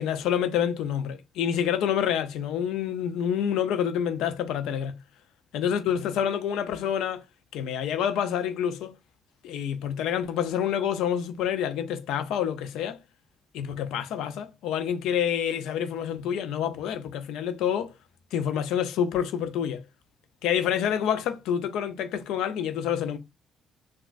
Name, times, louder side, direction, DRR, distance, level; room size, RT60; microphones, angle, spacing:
voice 1, 0.0-5.0 5.5-7.2 7.5-8.9 9.4-13.0 13.5-17.9 18.3-19.8 20.4-23.2, left 9 dB, 75° left, 0.4 m, -27 dB
3.7 x 2.3 x 2.4 m
supercardioid pair, 55°, 0 cm